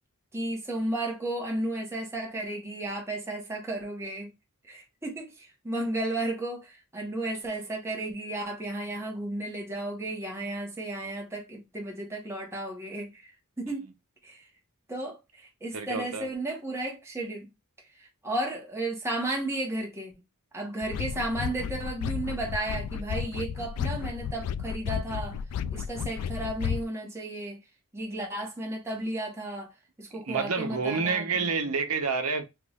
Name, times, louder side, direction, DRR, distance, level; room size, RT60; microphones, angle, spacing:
voice 1, 0.3-4.3 4.7-13.3 13.6-13.9 14.2-14.5 14.9-17.5 18.0-20.1 20.5-25.4 25.7-27.6 27.9-29.7 30.0-31.3, right 1 dB, 10° right, 1.1 m, -33 dB
voice 2, 15.7-16.3 30.1-32.4, right 5 dB, 75° right, 0.9 m, -28 dB
sound 1, 20.8-26.9, left 7 dB, 80° left, 0.3 m, -33 dB
3.6 x 3.2 x 2.4 m
head